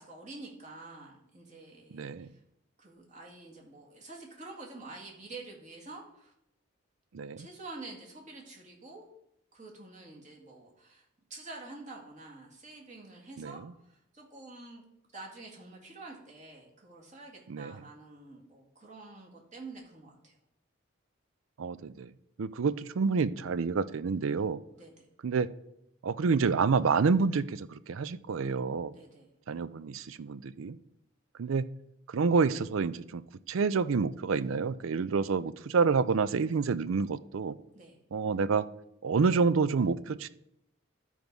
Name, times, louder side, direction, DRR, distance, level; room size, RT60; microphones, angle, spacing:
voice 1, 0.0-2.4 2.8-6.3 7.4-9.1 9.5-14.8 15.1-20.4 24.8-25.1 28.9-29.3 37.7-38.0, right 3 dB, 35° right, -1 dB, 2.0 m, -48 dB
voice 2, 1.9-2.3 7.1-7.5 13.4-13.7 17.5-17.8 21.6-22.1 22.4-24.6 25.2-25.5 26.0-28.9 29.5-30.8 31.4-31.7 32.1-33.2 33.5-37.5 38.1-38.7 39.0-40.3, right 5 dB, 80° right, 16 dB, 0.4 m, -28 dB
12.0 x 4.7 x 5.3 m, 0.80 s
head